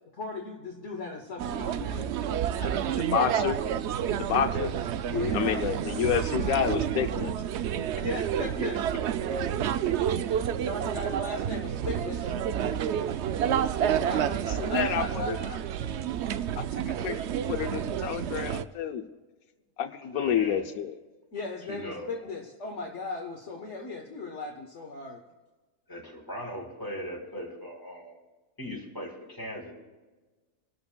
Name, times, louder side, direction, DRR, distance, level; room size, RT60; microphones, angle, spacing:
voice 1, 0.1-2.1 2.6-3.0 5.0-5.7 8.0-8.9 10.6-12.3 13.8-15.6 21.3-25.2, left 3 dB, 55° left, 1 dB, 1.4 m, -37 dB
sound 1, 1.4-18.6, right 9 dB, 65° right, 0.7 m, -29 dB
voice 2, 3.1-3.6 4.2-4.7 5.3-7.3 14.5-15.3 16.6-17.2 17.5-19.0 19.8-21.0, left 8 dB, 85° left, 7 dB, 1.2 m, -29 dB
voice 3, 20.0-20.6 21.6-22.3 25.9-28.2 28.6-29.7, equal, 15° left, -1 dB, 3.6 m, -39 dB
27.5 x 12.5 x 2.2 m, 1.3 s
omnidirectional pair, 1.5 m